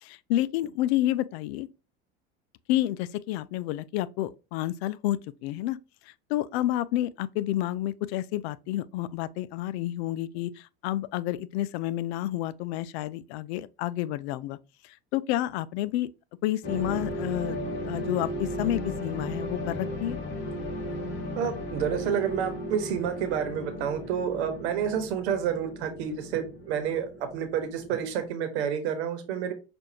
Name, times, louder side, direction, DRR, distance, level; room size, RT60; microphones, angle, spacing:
voice 1, 0.0-1.7 2.7-5.8 6.1-14.6 14.8-16.1 16.4-17.6 17.8-20.2, left 14 dB, 75° left, 0.5 m, -30 dB
sound 1, 16.6-28.3, equal, 35° left, 2.0 m, -35 dB
voice 2, 21.4-29.5, right 8 dB, 80° right, 1.1 m, -29 dB
6.1 x 2.6 x 2.8 m
supercardioid pair, 100°, 32 cm